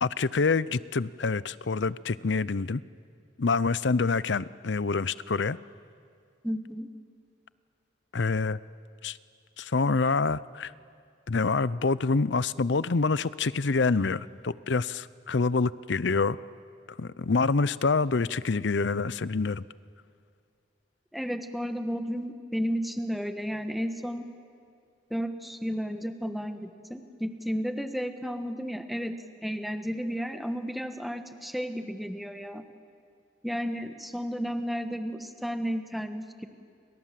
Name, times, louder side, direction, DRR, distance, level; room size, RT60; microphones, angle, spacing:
voice 1, 0.0-2.8 3.4-5.6 8.1-8.6 9.0-9.2 9.6-10.7 11.3-16.4 17.0-19.6, left 4 dB, 65° left, 18 dB, 0.6 m, -26 dB
voice 2, 6.4-6.9 21.1-24.3 25.1-29.2 29.4-32.6 33.4-36.5, equal, ahead, 7 dB, 1.4 m, -33 dB
29.5 x 26.5 x 7.6 m, 2.3 s
head